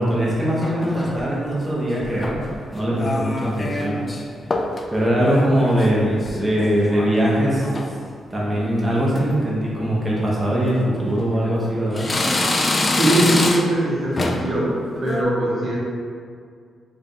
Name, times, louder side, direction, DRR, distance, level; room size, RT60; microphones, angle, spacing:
voice 1, 0.0-4.0 4.9-7.7 8.3-12.1, equal, 15° right, -6 dB, 0.8 m, -21 dB
sound 1, 0.6-1.3 2.0-2.6 3.0-4.2 4.5-4.9 5.2-7.1 7.5-7.9 8.5-8.8 9.2-9.3 10.2-10.3 11.0-11.6 12.0-13.8 14.2-14.5 14.9-15.2, left 2 dB, 30° left, 0.3 m, -25 dB
voice 2, 13.0-14.7 15.0-15.8, right 1 dB, 50° right, -6 dB, 0.8 m, -21 dB
3.4 x 2.2 x 3.8 m, 2.1 s
cardioid pair, 95°, 0 cm